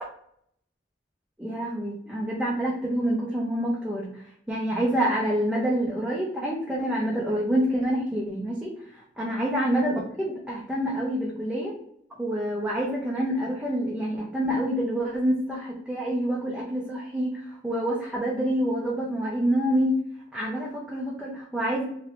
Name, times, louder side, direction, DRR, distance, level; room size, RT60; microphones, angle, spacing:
voice 1, 1.4-4.1 4.5-11.7 12.2-19.9 20.3-21.9, equal, 5° right, -4 dB, 0.5 m, -27 dB
3.0 x 2.7 x 3.0 m, 0.71 s
head